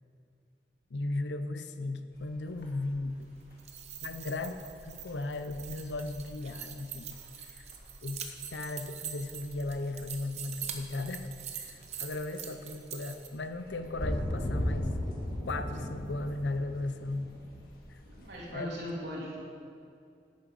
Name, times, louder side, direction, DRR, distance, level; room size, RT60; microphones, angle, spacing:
voice 1, 0.9-3.3 4.0-7.7 8.0-8.2 8.5-14.9 15.4-17.3 17.9-18.0 18.5-18.7, left 2 dB, 90° left, 9 dB, 0.6 m, -36 dB
sound 1, 2.1-18.5, left 1 dB, 55° left, 1.9 m, -40 dB
sound 2, 3.5-13.3, right 8 dB, 40° right, 0.8 m, -43 dB
voice 2, 18.1-19.4, equal, 80° right, -5 dB, 3.2 m, -39 dB
10.5 x 8.9 x 5.2 m, 2.4 s
head